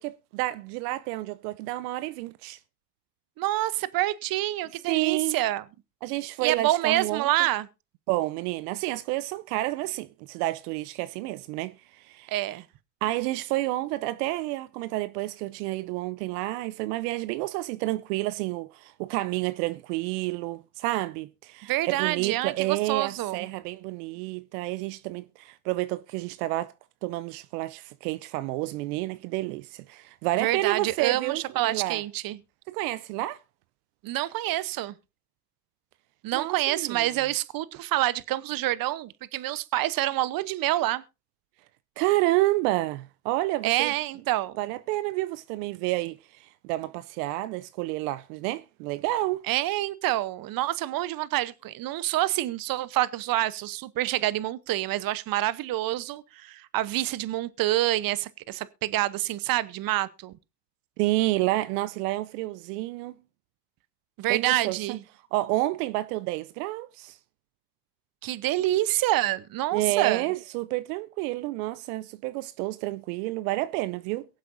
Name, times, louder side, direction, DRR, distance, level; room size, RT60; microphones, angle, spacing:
voice 1, 0.0-2.6 4.9-5.4 6.0-7.3 8.1-12.3 13.0-26.7 27.0-32.0 32.7-33.4 36.3-37.1 42.0-43.9 44.6-49.4 61.0-63.1 64.3-65.0 65.3-67.2 69.7-74.3, right 18 dB, 70° right, 0.7 m, -29 dB
voice 2, 3.4-5.6 6.4-7.7 12.3-12.6 21.7-23.5 30.4-32.4 34.0-35.0 36.2-41.0 43.6-44.6 49.5-60.3 64.2-65.0 68.2-70.2, right 15 dB, 45° right, 0.9 m, -27 dB
23.0 x 7.6 x 2.6 m
hypercardioid pair, 85°, 49 cm